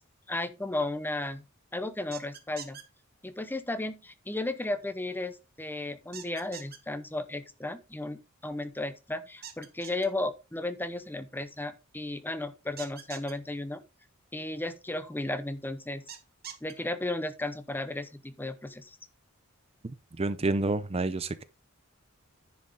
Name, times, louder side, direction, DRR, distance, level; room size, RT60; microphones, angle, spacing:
voice 1, 0.3-1.4 1.7-2.8 3.2-13.8 14.3-16.0 16.6-19.0, left 2 dB, 10° left, 0.8 m, -34 dB
sound 1, 2.1-2.8 6.1-6.8 9.4-10.1 12.8-13.3 16.1-16.7, right 9 dB, 50° right, 1.6 m, -43 dB
voice 2, 19.8-21.4, right 2 dB, 30° right, 0.6 m, -29 dB
10.0 x 6.6 x 3.8 m
head